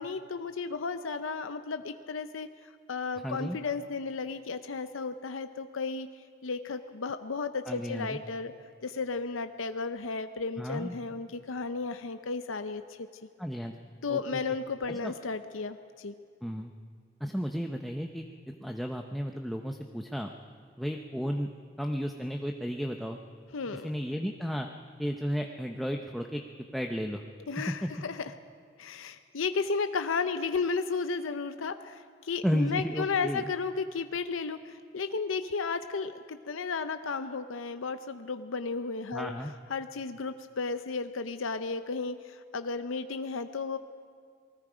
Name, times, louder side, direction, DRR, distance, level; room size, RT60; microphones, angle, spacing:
voice 1, 0.0-8.5 8.8-13.1 14.0-16.1 23.5-23.9 27.5-28.3 28.8-39.3 39.7-43.8, left 4 dB, 85° left, 9 dB, 0.7 m, -34 dB
voice 2, 3.2-3.6 7.7-8.2 10.6-11.0 13.4-13.7 14.1-14.4 14.9-15.1 16.4-16.7 17.2-18.3 18.6-20.3 20.8-21.5 21.8-23.2 23.7-24.7 25.0-27.2 27.7-27.9 32.4-33.5 39.1-39.5, equal, ahead, 2 dB, 0.7 m, -33 dB
27.5 x 20.0 x 5.1 m, 2.1 s
head